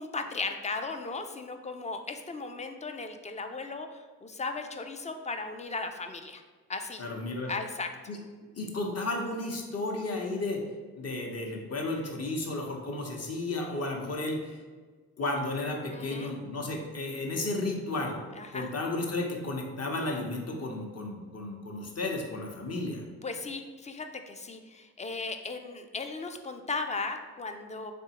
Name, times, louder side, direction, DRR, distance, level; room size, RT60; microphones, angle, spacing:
voice 1, 0.0-6.4 6.7-7.0 7.5-7.9 15.9-16.3 18.4-18.7 23.2-27.9, left 3 dB, 20° left, 6 dB, 0.3 m, -36 dB
voice 2, 7.0-7.5 8.1-8.2 8.6-10.6 11.0-14.5 15.2-18.2 18.5-23.0, left 2 dB, 40° left, 1 dB, 0.8 m, -33 dB
3.5 x 3.3 x 2.9 m, 1.4 s
supercardioid pair, 60°, 38 cm